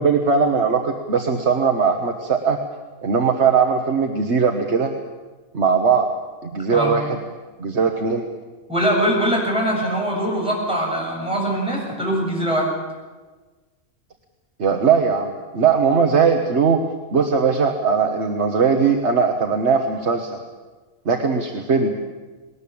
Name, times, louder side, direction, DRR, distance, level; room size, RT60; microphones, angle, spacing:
voice 1, 0.0-2.6 3.0-4.9 5.5-6.1 6.4-7.2 7.6-8.2 14.6-16.8 17.1-20.4 21.0-21.9, right 5 dB, 60° right, 4 dB, 1.6 m, -19 dB
voice 2, 8.7-12.7, right 1 dB, 5° right, -3 dB, 7.2 m, -22 dB
20.0 x 19.5 x 8.6 m, 1.3 s
omnidirectional pair, 1.3 m